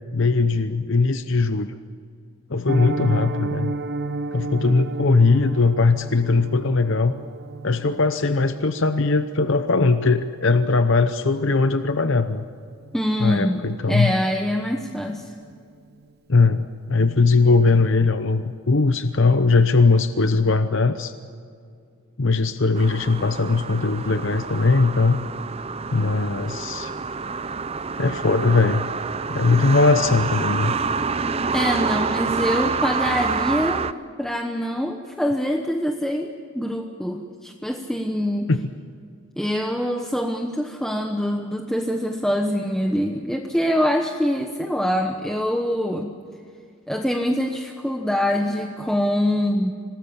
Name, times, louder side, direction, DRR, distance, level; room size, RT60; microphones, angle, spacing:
voice 1, 0.1-1.8 2.5-3.8 4.3-7.1 7.6-12.4 13.2-14.1 16.3-21.1 22.2-25.2 25.9-26.9 28.0-28.9 29.3-30.7 38.5-38.6, left 3 dB, 55° left, 10 dB, 0.8 m, -20 dB
Piano, 2.7-13.6 13.8-14.0 14.4-14.5 14.9-15.1 15.4-15.5, right 3 dB, 45° right, 1.0 m, -34 dB
voice 2, 12.9-15.3 31.5-33.9 34.2-38.5 39.4-46.1 46.9-49.7, equal, ahead, 2 dB, 1.0 m, -24 dB
sound 1, 22.8-33.9, right 5 dB, 25° right, 0.5 m, -27 dB
26.5 x 19.0 x 7.1 m, 2.4 s
head